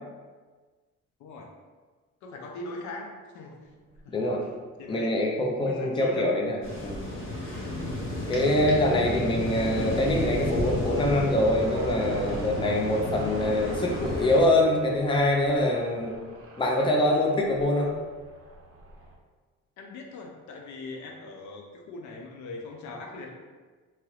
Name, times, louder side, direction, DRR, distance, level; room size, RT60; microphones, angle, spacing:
voice 1, 2.2-3.6 4.0-4.4 4.8-5.1 5.6-6.3 19.8-23.3, left 2 dB, 70° left, 1 dB, 0.5 m, -40 dB
sound 1, 3.6-4.4 5.1-19.2, right 3 dB, 50° right, 0.6 m, -44 dB
voice 2, 4.9-7.1 8.3-16.1 16.6-17.9, left 1 dB, 15° left, -1 dB, 0.5 m, -24 dB
sound 2, 6.6-14.4, left 1 dB, 40° left, 0.9 m, -32 dB
2.9 x 2.3 x 3.1 m, 1.4 s
cardioid pair, 90°, 30 cm